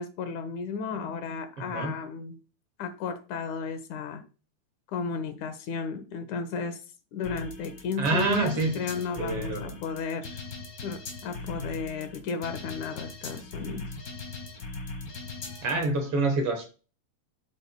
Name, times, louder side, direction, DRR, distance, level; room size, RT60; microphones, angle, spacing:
voice 1, 0.0-2.4 2.8-4.2 4.9-6.8 7.1-10.4 10.8-13.9, left 5 dB, 75° left, 8 dB, 2.4 m, -34 dB
voice 2, 1.6-2.0 8.0-8.7 9.2-9.8 15.6-16.6, right 3 dB, 60° right, 4 dB, 1.7 m, -27 dB
sound 1, 7.2-15.8, left 3 dB, 45° left, 1.6 m, -39 dB
12.5 x 5.6 x 2.2 m, 0.35 s
omnidirectional pair, 3.5 m